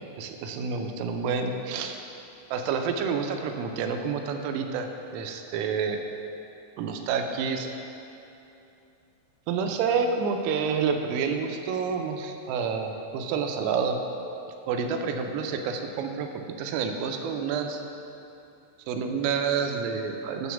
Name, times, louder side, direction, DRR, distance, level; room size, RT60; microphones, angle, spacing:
voice 1, 0.0-2.0 2.5-6.0 6.8-7.7 9.5-14.0 14.7-16.3 16.6-17.8 18.9-20.5, right 6 dB, 85° right, 5 dB, 3.3 m, -28 dB
10.5 x 3.8 x 7.1 m, 2.8 s
omnidirectional pair, 6.0 m